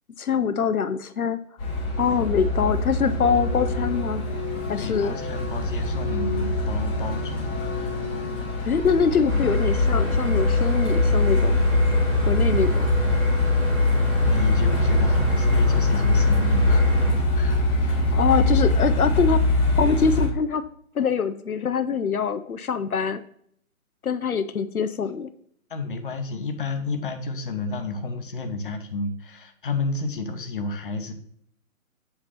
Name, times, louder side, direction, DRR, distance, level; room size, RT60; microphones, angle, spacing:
voice 1, 0.2-1.4 2.0-4.3 4.7-5.2 8.7-11.6 12.3-12.9 18.1-19.4 19.8-20.6 20.9-23.2 24.0-25.3, left 6 dB, 85° left, 10 dB, 0.6 m, -24 dB
Truck, 1.6-20.3, left 1 dB, 5° left, 0.8 m, -25 dB
voice 2, 4.8-8.1 14.2-17.9 25.7-31.1, left 3 dB, 40° left, 6 dB, 0.9 m, -31 dB
sound 1, 9.3-17.1, left 3 dB, 50° right, 2.2 m, -21 dB
7.6 x 2.8 x 5.7 m, 0.66 s
figure-of-eight pair, 140°, 42 cm